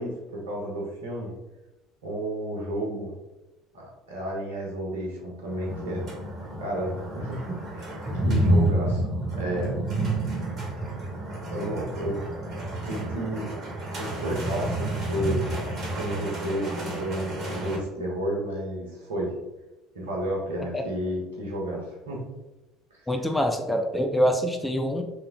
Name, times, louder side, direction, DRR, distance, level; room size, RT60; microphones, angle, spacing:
voice 1, 0.0-1.3 2.0-3.1 3.7-6.0 6.6-9.8 11.5-12.1 12.8-13.5 14.0-15.4 15.9-19.3 19.9-22.2 22.9-23.0, right 1 dB, 75° right, -2 dB, 1.1 m, -32 dB
sound 1, 5.5-17.8, right 1 dB, 45° right, 1.4 m, -29 dB
voice 2, 23.1-25.0, equal, 10° left, 4 dB, 0.5 m, -25 dB
3.3 x 3.1 x 3.6 m, 1.0 s
figure-of-eight pair, 60°, 0 cm